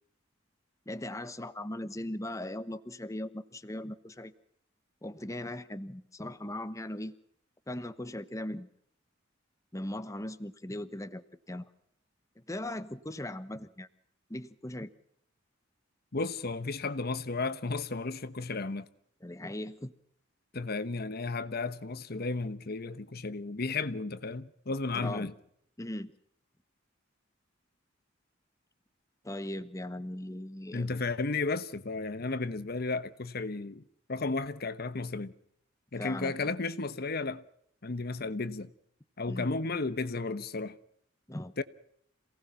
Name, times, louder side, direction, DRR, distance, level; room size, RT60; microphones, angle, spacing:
voice 1, 0.9-4.3 5.0-7.2 7.7-8.7 9.7-11.7 12.5-13.9 14.3-14.9 19.2-19.9 25.0-25.2 25.8-26.1 29.2-30.9 36.0-36.5 39.3-39.5 41.3-41.5, left 1 dB, 15° left, 1.1 m, -39 dB
voice 2, 16.1-18.9 20.5-25.3 30.7-33.8 34.1-35.3 35.9-37.4 37.8-38.7 39.2-40.8 41.6-41.7, left 3 dB, 50° left, 1.0 m, -33 dB
27.5 x 18.5 x 5.9 m
head